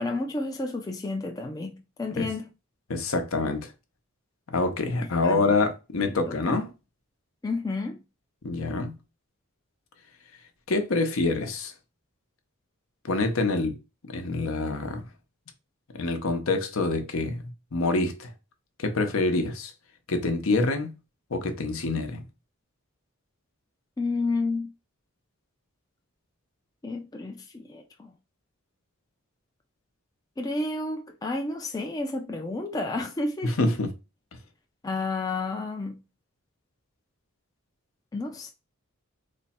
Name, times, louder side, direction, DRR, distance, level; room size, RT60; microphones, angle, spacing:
voice 1, 0.0-2.5 5.0-5.5 6.1-6.6 7.4-8.0 24.0-24.7 26.8-28.1 30.4-33.7 34.8-36.0 38.1-38.5, left 2 dB, 15° left, 0.3 m, -31 dB
voice 2, 2.9-3.7 4.5-6.7 8.4-8.9 10.7-11.7 13.0-13.8 14.1-15.0 15.9-18.3 18.8-19.7 20.1-20.9 21.3-22.2 33.4-33.9, left 3 dB, 70° left, 0.7 m, -26 dB
3.3 x 2.1 x 4.1 m
head